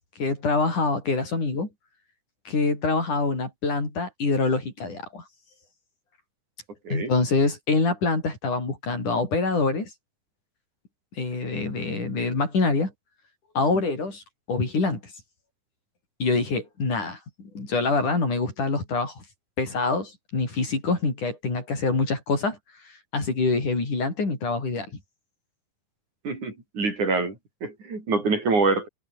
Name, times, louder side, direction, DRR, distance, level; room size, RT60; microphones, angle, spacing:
voice 1, 0.2-1.7 2.5-5.2 6.9-9.9 11.2-12.9 13.6-14.2 14.5-15.1 16.2-17.2 17.6-19.2 19.6-22.6 23.1-24.9, left 3 dB, 70° left, 9.2 m, -25 dB
voice 2, 26.2-28.9, right 3 dB, 65° right, 8.5 m, -25 dB
omnidirectional pair, 3.6 m